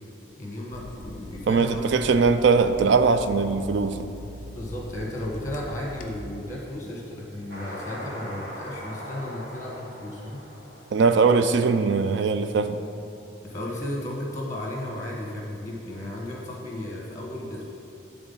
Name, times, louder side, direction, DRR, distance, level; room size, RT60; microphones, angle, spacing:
voice 1, 0.4-2.3 4.5-10.4 13.4-17.7, left 1 dB, 15° left, -3 dB, 1.4 m, -34 dB
Water tap faucet / Sink (filling or washing), 0.7-6.2, left 2 dB, 45° left, 0.5 m, -41 dB
voice 2, 1.5-4.1 10.9-12.8, right 4 dB, 70° right, 10 dB, 0.4 m, -21 dB
sound 1, 7.5-11.8, equal, 50° right, 1.9 m, -41 dB
10.5 x 3.6 x 5.5 m, 2.8 s
head